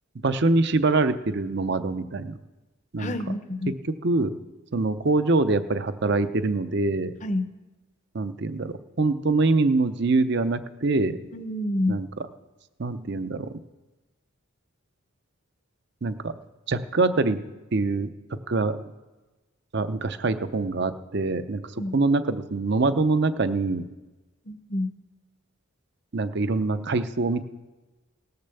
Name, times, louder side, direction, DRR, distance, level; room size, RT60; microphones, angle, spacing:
voice 1, 0.2-2.3 2.9-3.1 3.8-4.4 4.7-7.2 8.1-11.2 11.9-12.1 12.8-13.5 16.0-16.3 16.7-17.4 17.7-18.1 18.5-18.8 19.7-23.8 26.1-27.4, right 3 dB, 50° right, 11 dB, 0.6 m, -24 dB
voice 2, 3.0-3.7 7.2-7.4 11.3-12.0 21.8-21.9 24.5-24.9, left 1 dB, 35° left, 10 dB, 0.7 m, -28 dB
18.0 x 6.7 x 6.8 m, 1.2 s
head